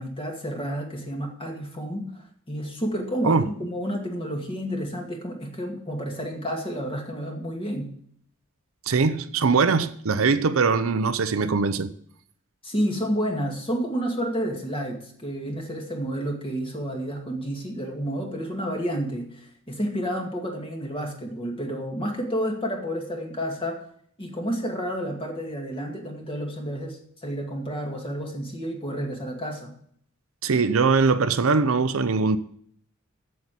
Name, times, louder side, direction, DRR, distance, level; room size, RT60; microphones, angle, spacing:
voice 1, 0.0-8.0 12.6-23.8 24.2-29.8, equal, 25° left, 2.1 m, -30 dB
voice 2, 8.9-11.9 30.4-32.4, right 4 dB, 75° right, 0.6 m, -21 dB
8.0 x 7.7 x 8.3 m
head